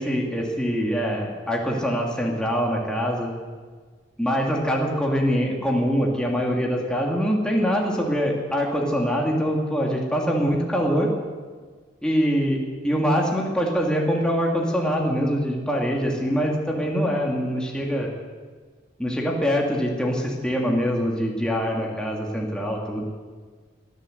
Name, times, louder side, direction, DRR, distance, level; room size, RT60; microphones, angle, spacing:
voice 1, 0.0-3.3 4.2-11.1 12.0-12.6 12.8-18.1 19.0-23.0, equal, 5° left, -2 dB, 2.8 m, -24 dB
23.5 x 14.0 x 8.2 m, 1.5 s
head